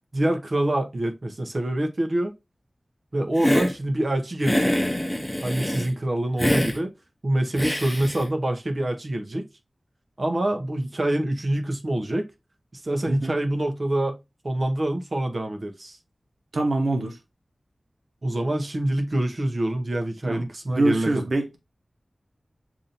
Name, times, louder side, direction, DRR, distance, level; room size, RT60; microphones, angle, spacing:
voice 1, 0.1-2.3 3.1-4.8 5.4-6.9 7.2-9.5 10.2-12.3 12.7-14.2 14.4-16.0 18.2-21.2, right 1 dB, 50° right, 0.9 m, -26 dB
Hiss, 3.4-3.7 4.4-5.9 6.4-6.8 7.6-8.3, equal, 10° left, 0.8 m, -24 dB
voice 2, 16.5-17.2 20.3-21.6, right 2 dB, 85° right, 1.0 m, -25 dB
7.2 x 2.7 x 2.6 m
wide cardioid pair, 55°, 0 cm